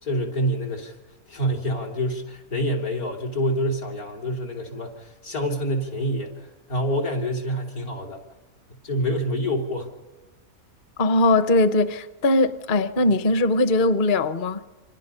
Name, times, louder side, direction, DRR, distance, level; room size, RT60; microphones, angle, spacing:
voice 1, 0.0-1.0 1.3-8.2 8.8-9.9, equal, 85° left, 3.5 m, -27 dB
voice 2, 11.0-14.6, left 2 dB, 40° left, 0.9 m, -20 dB
29.0 x 25.0 x 5.6 m
omnidirectional pair, 1.5 m